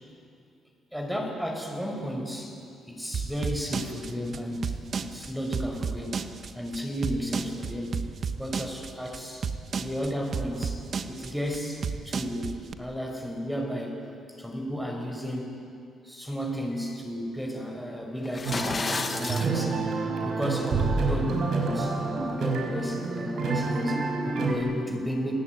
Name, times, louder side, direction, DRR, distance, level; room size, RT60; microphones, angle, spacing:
voice 1, 0.9-2.6 2.9-6.2 6.6-8.0 8.4-10.8 11.1-14.0 14.3-15.7 16.0-25.3, equal, ahead, 1 dB, 5.4 m, -33 dB
sound 1, 3.1-12.7, right 6 dB, 50° right, 1.4 m, -32 dB
sound 2, 18.2-19.5, left 4 dB, 30° left, 1.6 m, -31 dB
sound 3, 18.5-24.5, right 3 dB, 70° right, 4.9 m, -28 dB
29.5 x 18.5 x 9.5 m, 2.5 s
cardioid pair, 90°, 0 cm